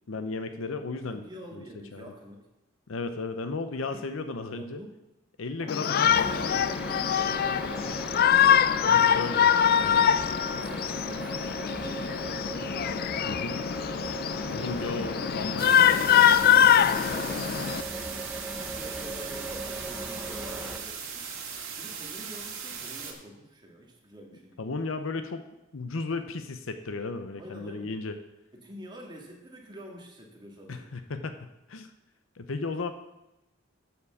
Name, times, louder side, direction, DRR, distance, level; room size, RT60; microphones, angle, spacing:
voice 1, 0.1-1.2 1.5-1.6 1.9-2.1 2.9-4.8 5.4-6.5 8.8-10.0 13.3-13.6 14.4-16.0 24.6-25.4 25.7-28.2 30.7-31.9 32.4-32.9, left 3 dB, 80° left, 9 dB, 0.7 m, -35 dB
voice 2, 1.1-2.5 3.9-4.1 4.6-5.0 5.6-8.1 10.4-13.0 14.4-16.1 16.7-18.1 18.6-21.2 21.8-24.6 27.4-27.9 28.5-30.9, equal, 20° right, 0 dB, 2.0 m, -46 dB
Shout, 5.7-17.8, left 9 dB, 50° left, 0.3 m, -23 dB
sound 1, 6.0-20.8, right 2 dB, 5° right, 1.0 m, -38 dB
sound 2, 15.6-23.1, right 6 dB, 70° right, 2.0 m, -38 dB
8.5 x 7.3 x 7.1 m, 0.93 s
head